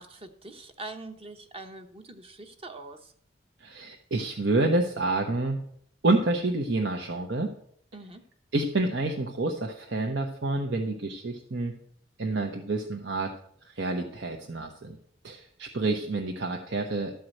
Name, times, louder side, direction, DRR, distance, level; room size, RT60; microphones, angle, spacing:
voice 1, 0.0-3.1 7.9-8.2, right 2 dB, 30° right, 6 dB, 1.0 m, -43 dB
voice 2, 3.6-5.6 6.0-7.5 8.5-11.8 12.2-13.3 13.6-15.0 15.2-17.1, right 2 dB, 70° right, 2 dB, 1.0 m, -28 dB
13.0 x 4.7 x 7.7 m, 0.64 s
head